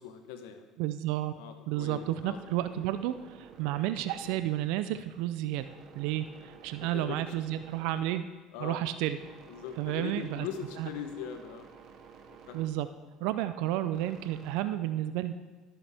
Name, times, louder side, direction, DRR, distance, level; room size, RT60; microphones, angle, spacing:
voice 1, 0.0-0.7 1.4-2.4 6.8-7.3 8.5-8.8 9.5-11.7 12.3-12.7, left 8 dB, 85° left, 7 dB, 0.9 m, -41 dB
voice 2, 0.8-1.3 1.7-8.2 8.6-9.2 9.8-10.5 10.8-10.9 12.5-12.9 13.2-15.3, right 13 dB, 75° right, 11 dB, 0.4 m, -31 dB
sound 1, 1.4-14.5, right 6 dB, 50° right, 0.9 m, -54 dB
13.5 x 7.0 x 3.5 m, 1.2 s
cardioid pair, 120°, 0 cm